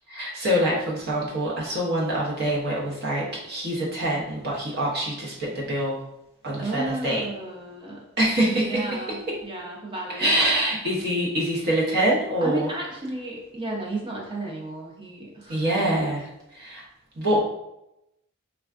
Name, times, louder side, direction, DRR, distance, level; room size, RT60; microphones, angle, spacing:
voice 1, 0.1-6.0 6.4-7.3 8.2-9.0 10.2-12.7 15.5-16.8 17.1-17.4, right 1 dB, 50° right, -4 dB, 0.8 m, -25 dB
voice 2, 6.6-8.0 8.4-10.3 12.4-15.6, right 2 dB, 25° right, -3 dB, 0.6 m, -33 dB
3.3 x 2.3 x 2.4 m, 0.87 s
head